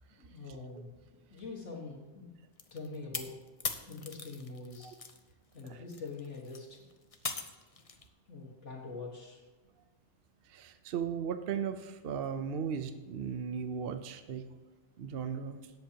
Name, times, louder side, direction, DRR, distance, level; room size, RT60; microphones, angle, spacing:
voice 1, 0.2-1.0 1.3-2.3 2.7-3.3 3.8-5.0 5.5-6.8 7.5-7.7 8.3-9.4, left 3 dB, 75° left, -2 dB, 2.0 m, -44 dB
sound 1, 2.6-5.2 5.5-8.1, left 4 dB, 35° left, 0.7 m, -40 dB
voice 2, 10.4-14.5 15.0-15.7, right 7 dB, 60° right, 9 dB, 0.8 m, -37 dB
17.5 x 7.9 x 2.9 m, 1.3 s
omnidirectional pair, 1.2 m